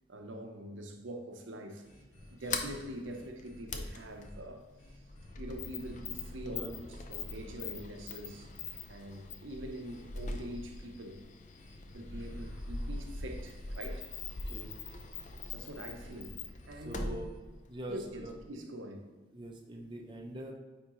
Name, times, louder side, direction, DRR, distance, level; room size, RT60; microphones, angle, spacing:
voice 1, 0.1-1.8 2.3-4.6 5.4-8.5 8.9-11.2 11.9-14.1 15.5-17.2 17.9-19.1, right 1 dB, 80° right, 4 dB, 0.8 m, -44 dB
sound 1, 1.8-4.4 4.8-5.4 5.8-6.3 6.9-7.5 8.2-8.8 9.8-10.4 11.5-17.4, left 1 dB, 70° left, 1.5 m, -58 dB
Sliding door, 2.2-18.5, left 3 dB, 40° left, 0.5 m, -42 dB
voice 2, 6.4-6.9 14.4-14.8 16.8-17.3 17.7-18.4 19.3-20.5, right 1 dB, 25° right, 1 dB, 0.5 m, -43 dB
9.2 x 3.6 x 3.0 m, 1.3 s
head